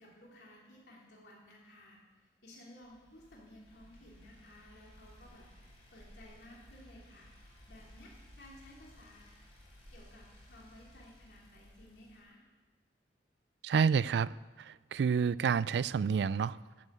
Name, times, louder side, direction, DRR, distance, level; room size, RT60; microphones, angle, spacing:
voice 1, 0.0-2.0 2.4-5.4 5.9-7.3 7.7-9.2 9.9-12.4, left 1 dB, 65° left, -4 dB, 3.1 m, -56 dB
sound 1, 2.8-12.2, equal, 35° left, 3.8 m, -57 dB
voice 2, 13.6-16.6, right 6 dB, 70° right, 20 dB, 0.3 m, -29 dB
14.5 x 7.0 x 8.5 m, 1.3 s
head